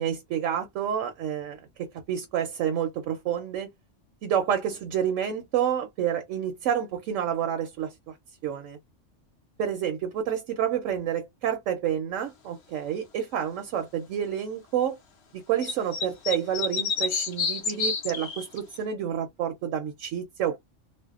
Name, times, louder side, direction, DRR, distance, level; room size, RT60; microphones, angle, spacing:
voice 1, 0.0-3.7 4.2-8.2 8.4-8.8 9.6-15.0 15.3-20.6, right 9 dB, 85° right, 1.0 m, -29 dB
sound 1, 15.6-18.8, left 5 dB, 65° left, 0.9 m, -28 dB
2.6 x 2.0 x 2.3 m
omnidirectional pair, 1.3 m